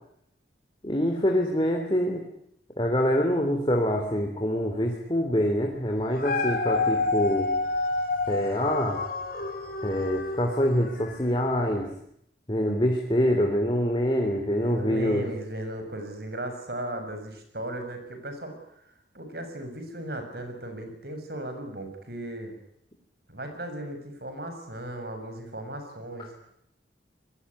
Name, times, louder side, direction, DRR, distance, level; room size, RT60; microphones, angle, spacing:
voice 1, 0.8-2.2 2.8-7.5 8.3-9.0 9.8-11.9 12.5-15.2, equal, 25° left, 2 dB, 3.5 m, -25 dB
Dog, 6.0-11.3 11.9-12.0, left 3 dB, 50° left, 5.2 m, -29 dB
voice 2, 14.6-18.5 19.1-22.6 23.3-26.3, right 1 dB, 60° right, 6 dB, 7.0 m, -36 dB
27.0 x 21.0 x 9.9 m, 0.73 s
head